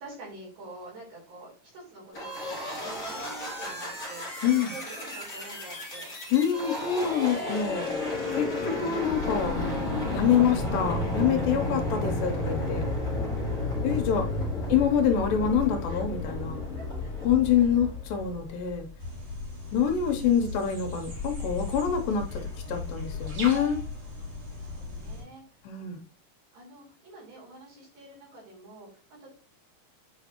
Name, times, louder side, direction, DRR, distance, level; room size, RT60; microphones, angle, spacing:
voice 1, 0.0-6.1 6.5-7.6 15.9-17.3 17.6-17.7 20.2-20.4 24.5-25.8 26.5-29.3, right 2 dB, 75° right, -5 dB, 5.9 m, -48 dB
sound 1, 2.1-18.8, left 1 dB, 25° left, 3.5 m, -32 dB
voice 2, 6.3-7.9 8.3-9.6 10.1-12.9 13.8-14.3 14.7-16.6 17.2-18.9 19.7-23.8 25.7-26.0, left 8 dB, 75° left, 5 dB, 2.3 m, -26 dB
sound 2, 9.1-13.7 15.1-19.5 21.1-25.6, left 5 dB, 60° left, 2.5 m, -40 dB
sound 3, 19.0-25.2, left 2 dB, 45° right, 3.2 m, -38 dB
8.8 x 5.1 x 2.9 m, 0.39 s
omnidirectional pair, 4.3 m